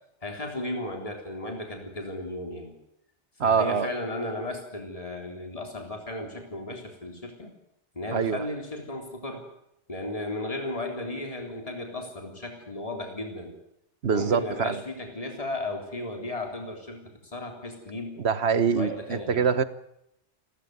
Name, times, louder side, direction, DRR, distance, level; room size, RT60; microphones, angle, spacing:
voice 1, 0.2-2.7 3.4-7.5 7.9-9.4 9.9-13.6 14.1-18.2 18.7-19.7, left 1 dB, 30° left, 3 dB, 3.9 m, -35 dB
voice 2, 3.4-3.9 8.1-8.4 14.0-14.8 18.2-19.6, right 6 dB, 65° right, 14 dB, 1.4 m, -24 dB
28.5 x 14.0 x 9.5 m, 0.81 s
omnidirectional pair, 1.2 m